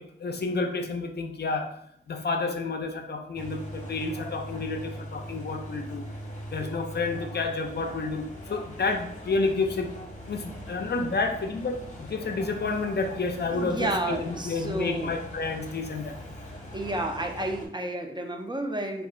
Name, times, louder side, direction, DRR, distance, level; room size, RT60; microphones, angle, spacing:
voice 1, 0.0-1.7 2.1-6.1 6.5-9.9 10.3-16.2, left 3 dB, 55° left, 5 dB, 0.4 m, -30 dB
sound 1, 3.4-17.7, equal, 35° left, 0.8 m, -41 dB
voice 2, 13.5-15.1 16.7-19.1, right 1 dB, 20° right, 3 dB, 0.4 m, -31 dB
2.4 x 2.0 x 3.6 m, 0.70 s
cardioid pair, 50°, 21 cm